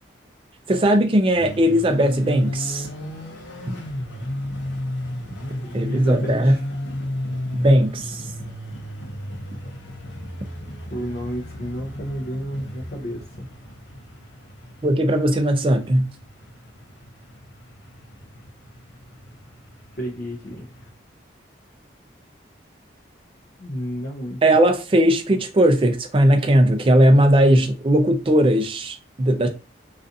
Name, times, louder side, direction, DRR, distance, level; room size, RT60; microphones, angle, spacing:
voice 1, 0.7-2.9 5.7-6.6 7.5-8.2 14.8-16.1 24.4-29.5, right 1 dB, 30° right, 0.3 m, -18 dB
sound 1, 1.3-20.9, left 1 dB, 85° left, 0.8 m, -34 dB
voice 2, 5.5-6.6 10.9-13.5 20.0-20.7 23.6-24.4, equal, 50° left, 0.5 m, -31 dB
2.4 x 2.3 x 2.6 m
head